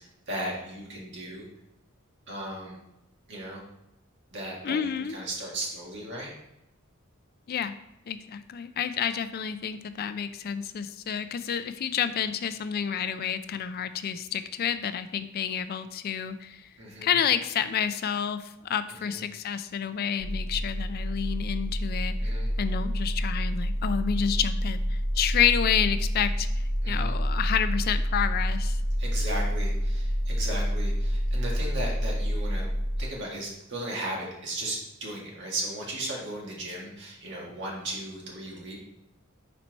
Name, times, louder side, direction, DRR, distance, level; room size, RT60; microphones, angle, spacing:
voice 1, 0.0-1.5 2.3-2.8 3.3-3.6 4.3-6.3 16.8-17.2 19.0-19.2 22.2-22.5 26.8-27.2 29.0-32.7 33.0-38.8, right 1 dB, 60° right, -2 dB, 1.8 m, -36 dB
voice 2, 4.6-5.2 7.5-7.7 8.1-16.7 17.0-22.3 22.6-26.5 26.9-28.8, left 8 dB, 50° left, 12 dB, 0.3 m, -29 dB
sound 1, 20.2-33.0, equal, 15° right, 0.6 m, -28 dB
4.5 x 4.2 x 5.2 m, 0.87 s
head